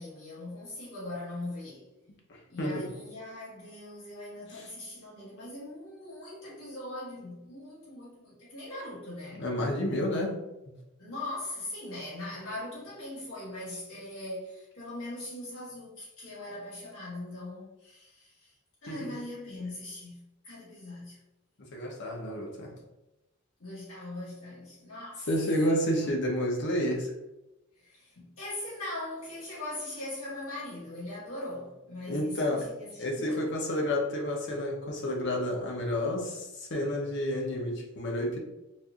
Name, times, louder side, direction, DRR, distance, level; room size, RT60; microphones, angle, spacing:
voice 1, 0.0-1.9 2.5-9.4 11.0-18.5 18.8-21.2 23.6-25.3 27.7-33.4, left 1 dB, 90° left, 1.4 m, -40 dB
voice 2, 2.3-2.9 9.3-10.4 18.9-19.2 21.6-22.7 25.3-27.1 32.1-32.7 33.0-38.4, left 1 dB, 60° left, 0.7 m, -30 dB
4.2 x 2.5 x 2.3 m
head